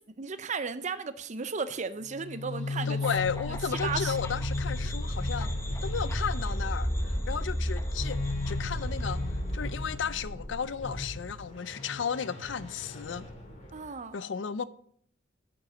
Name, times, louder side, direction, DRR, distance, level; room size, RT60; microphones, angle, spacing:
voice 1, 0.2-3.0 3.5-3.6 3.8-4.1 13.7-14.2, right 5 dB, 40° right, 0.6 m, -34 dB
sound 1, 2.1-13.9, left 2 dB, 40° left, 2.1 m, -36 dB
voice 2, 2.9-5.5 5.8-6.9 7.3-8.2 8.5-9.2 9.5-13.2 14.1-14.6, left 6 dB, 80° left, 0.5 m, -34 dB
sound 2, 3.0-10.2, equal, 15° left, 0.8 m, -34 dB
9.1 x 5.4 x 5.8 m
head